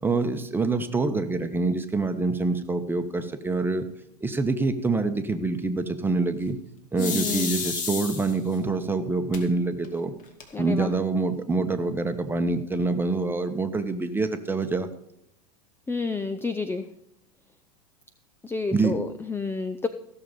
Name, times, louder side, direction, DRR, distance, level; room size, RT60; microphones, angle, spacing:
voice 1, 0.0-3.8 4.2-6.6 6.9-10.1 10.6-14.9 18.7-19.0, right 3 dB, 10° right, 7 dB, 1.3 m, -26 dB
sound 1, 7.0-8.6 9.3-9.4 9.8-9.9 10.2-10.8, left 5 dB, 40° left, 2.4 m, -31 dB
voice 2, 7.0-7.5 10.5-10.9 15.9-16.9 18.4-19.9, left 4 dB, 10° left, 11 dB, 0.6 m, -30 dB
16.0 x 6.8 x 5.4 m, 0.80 s
hypercardioid pair, 95°, 20 cm